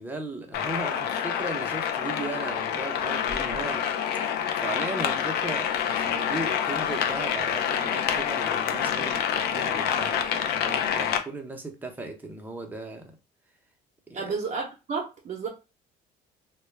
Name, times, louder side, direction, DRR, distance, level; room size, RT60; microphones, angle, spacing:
voice 1, 0.0-3.9 4.2-4.3 4.6-13.1 14.1-14.2, right 2 dB, 10° right, 0.6 m, -37 dB
sound 1, 0.5-11.2, left 8 dB, 70° left, 0.4 m, -27 dB
voice 2, 14.1-15.5, right 5 dB, 45° right, 0.7 m, -31 dB
2.2 x 2.1 x 3.2 m
cardioid pair, 110°, 17 cm